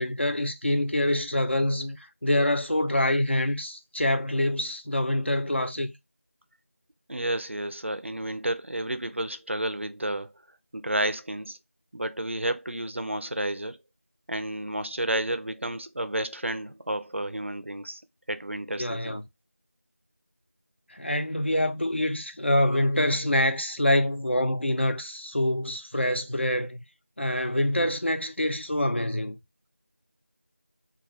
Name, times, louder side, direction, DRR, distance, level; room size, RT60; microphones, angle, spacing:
voice 1, 0.0-5.9 18.8-19.2 20.9-26.8 27.2-29.4, left 1 dB, 50° left, 0.4 m, -26 dB
voice 2, 7.1-10.3 10.7-11.6 11.9-13.8 14.3-18.0 18.3-19.2, right 1 dB, 55° right, 0.3 m, -31 dB
2.3 x 2.1 x 3.6 m
figure-of-eight pair, 180°, 8 cm